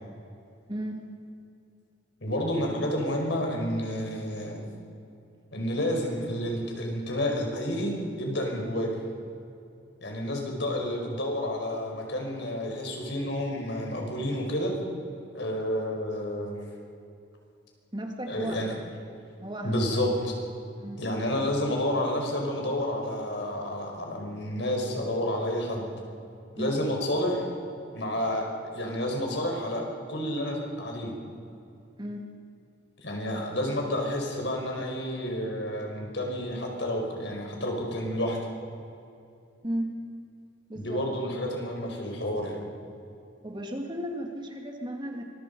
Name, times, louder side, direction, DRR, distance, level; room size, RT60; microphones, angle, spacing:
voice 1, 0.7-1.0 17.9-18.8 19.4-20.0 20.8-21.0 26.6-26.8 32.0-32.2 39.6-39.9 40.7-41.0 43.4-45.2, right 1 dB, 25° right, 2 dB, 2.3 m, -34 dB
voice 2, 2.2-4.6 5.5-9.0 10.0-14.7 15.3-16.5 18.3-18.7 19.6-20.1 21.0-25.8 26.5-27.4 27.9-28.5 28.7-31.1 33.0-38.4 40.7-42.6, left 1 dB, 70° left, 1 dB, 5.1 m, -30 dB
25.0 x 22.0 x 5.5 m, 2.6 s
head